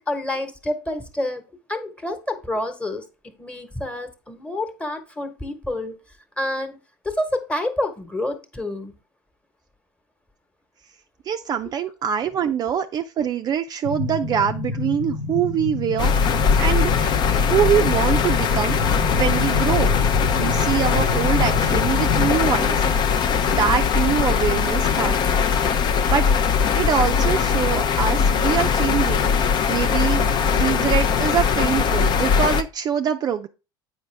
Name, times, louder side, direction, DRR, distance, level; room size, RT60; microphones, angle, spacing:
voice 1, 0.0-1.4 1.7-6.0 6.4-6.8 7.0-8.9 11.6-11.7, left 1 dB, 10° left, 1.2 m, -28 dB
voice 2, 11.3-16.3 16.6-17.1 17.4-18.8 19.1-19.9 20.4-23.1 23.5-25.5 26.1-26.2 26.7-29.3 29.7-33.5, right 8 dB, 40° right, 0.4 m, -24 dB
sound 1, 13.8-22.3, left 3 dB, 85° left, 1.1 m, -28 dB
sound 2, 16.0-32.6, left 6 dB, 45° left, 0.6 m, -20 dB
8.0 x 5.0 x 3.3 m
hypercardioid pair, 90°, 11 cm